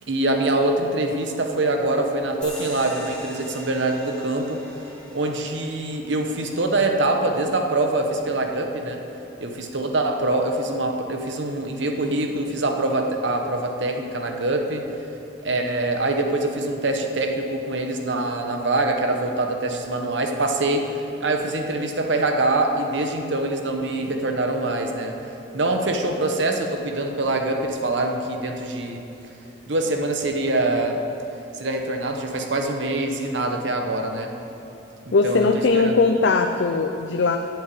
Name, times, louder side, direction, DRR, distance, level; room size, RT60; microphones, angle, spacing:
voice 1, 0.1-4.6 5.1-9.0 9.4-14.9 15.4-29.0 29.7-31.0 31.5-34.3 35.0-35.5 35.7-36.0, right 2 dB, 70° right, 4 dB, 1.0 m, -24 dB
sound 1, 2.4-9.5, left 1 dB, 5° left, 2.0 m, -43 dB
voice 2, 35.1-37.4, left 4 dB, 65° left, 5 dB, 0.5 m, -19 dB
8.0 x 7.9 x 8.5 m, 2.9 s
head